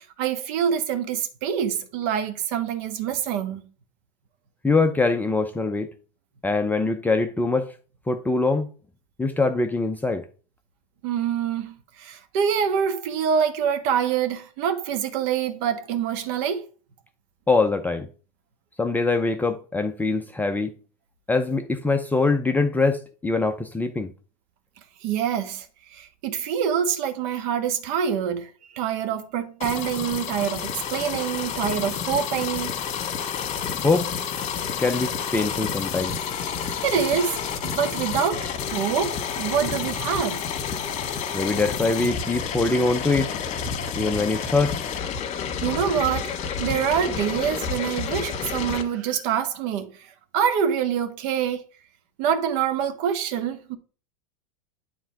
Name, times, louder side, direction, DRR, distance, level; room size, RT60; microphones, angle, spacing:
voice 1, 0.0-3.7 11.0-16.6 25.0-32.7 36.8-40.4 45.6-49.9 50.3-51.6 52.2-53.8, right 8 dB, 50° right, 1.4 m, -26 dB
voice 2, 4.6-5.9 6.4-7.7 8.1-8.7 9.2-10.2 17.5-18.1 18.8-20.7 21.3-24.1 33.8-34.1 34.8-36.2 41.3-43.3 43.9-44.8, left 3 dB, 10° left, 0.6 m, -23 dB
sound 1, 29.6-48.8, left 7 dB, 35° left, 1.8 m, -30 dB
9.2 x 3.7 x 4.6 m
hypercardioid pair, 95°, 20 cm